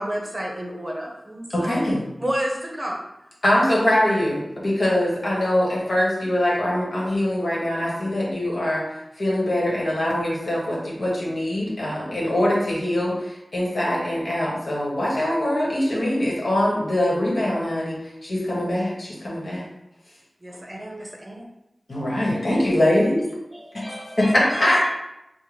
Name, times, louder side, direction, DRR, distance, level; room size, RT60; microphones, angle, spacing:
voice 1, 0.0-1.7 2.2-3.0 3.5-3.7 20.4-21.5, equal, 30° right, -1 dB, 0.7 m, -30 dB
voice 2, 1.5-2.0 3.4-8.8 9.2-19.7 21.9-23.2 23.7-23.8 24.2-24.8, left 1 dB, 70° left, -5 dB, 1.1 m, -23 dB
voice 3, 23.5-24.9, equal, 30° left, -6 dB, 1.1 m, -37 dB
3.7 x 2.1 x 3.2 m, 0.88 s
wide cardioid pair, 45°, 0 cm